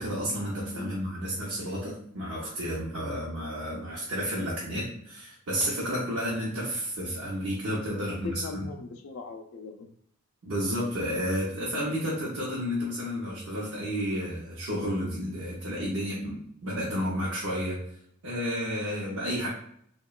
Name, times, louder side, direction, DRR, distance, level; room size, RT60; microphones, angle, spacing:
voice 1, 0.0-8.6 10.4-17.8 18.2-19.5, equal, 85° right, -6 dB, 0.7 m, -31 dB
voice 2, 8.0-9.9, left 4 dB, 65° left, 5 dB, 0.3 m, -40 dB
2.8 x 2.2 x 2.3 m, 0.65 s
head